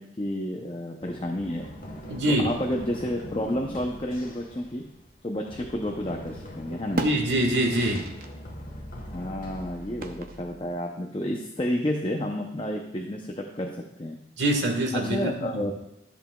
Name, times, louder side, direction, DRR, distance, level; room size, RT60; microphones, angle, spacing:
voice 1, 0.0-1.7 2.3-4.9 5.2-7.0 9.1-14.2 14.9-15.7, left 1 dB, 30° left, 2 dB, 0.6 m, -30 dB
Run, 1.0-10.8, equal, 50° left, 1.3 m, -42 dB
voice 2, 2.1-2.5 7.0-8.1 14.4-15.6, right 1 dB, 80° right, 3 dB, 1.5 m, -24 dB
sound 1, 5.6-6.4 6.7-8.3 8.6-8.7 10.0-10.6, right 2 dB, 50° right, 0.7 m, -35 dB
13.5 x 7.2 x 2.3 m, 0.88 s
head